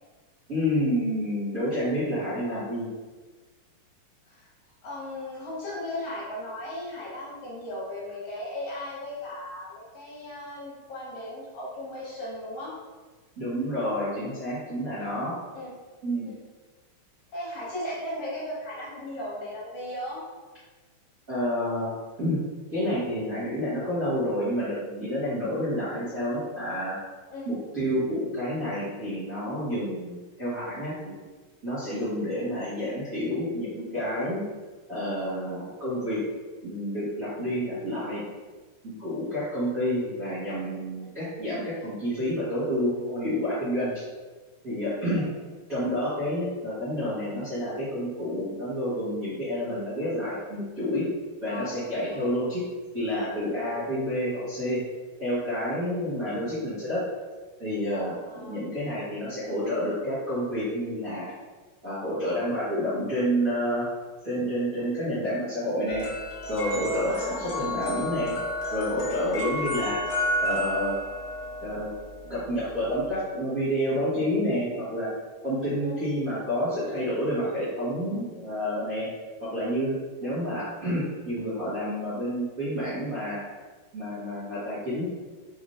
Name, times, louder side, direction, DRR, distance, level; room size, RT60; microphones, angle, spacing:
voice 1, 0.5-2.9 13.4-15.4 16.0-16.3 21.3-21.9 22.2-22.4 22.7-27.0 27.4-31.2 31.6-34.4 34.9-36.2 36.6-38.2 38.8-44.0 44.6-45.3 45.7-51.1 51.4-52.6 52.9-54.8 55.2-57.0 57.6-58.2 58.4-61.3 61.8-63.9 64.2-66.1 66.5-68.4 68.7-70.0 70.4-71.0 71.6-71.9 72.3-75.1 75.4-79.1 79.4-79.9 80.2-83.4 83.9-85.1, equal, 75° right, -14 dB, 0.7 m, -29 dB
voice 2, 4.8-12.7 15.0-15.7 16.2-16.4 17.3-20.2 27.3-27.5 32.0-32.1 41.0-41.1 45.1-45.3 51.5-51.8 52.1-52.3 56.0-56.2 58.3-58.6 67.1-67.6 69.1-69.4 75.8-76.0 80.2-80.4, left 1 dB, 65° left, -6 dB, 2.3 m, -37 dB
sound 1, 65.9-73.1, left 1 dB, 90° left, 1.1 m, -32 dB
5.2 x 3.8 x 2.5 m, 1.3 s
omnidirectional pair, 3.9 m